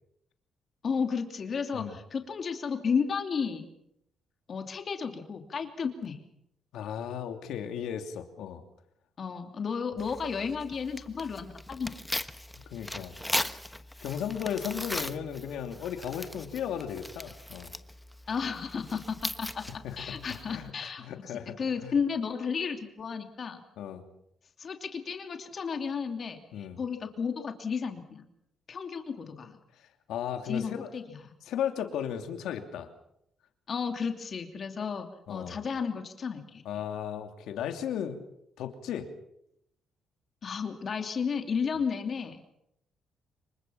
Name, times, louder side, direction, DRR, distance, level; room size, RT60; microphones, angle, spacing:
voice 1, 0.8-3.7 4.5-6.2 9.2-12.0 18.3-19.6 20.0-23.6 24.6-28.2 28.7-29.6 30.4-31.3 33.7-36.6 40.4-42.5, left 6 dB, 50° left, 5 dB, 2.8 m, -33 dB
voice 2, 6.7-8.6 12.7-13.1 14.0-17.7 19.8-20.2 20.5-21.6 21.8-21.9 23.8-24.0 26.5-26.8 30.1-30.9 31.5-32.9 35.3-35.6 36.6-38.2 38.6-39.1, left 9 dB, 85° left, 6 dB, 2.9 m, -35 dB
Tearing, 10.0-20.7, left 1 dB, 5° left, 1.1 m, -39 dB
27.0 x 23.5 x 5.8 m, 0.76 s
cardioid pair, 90°, 0 cm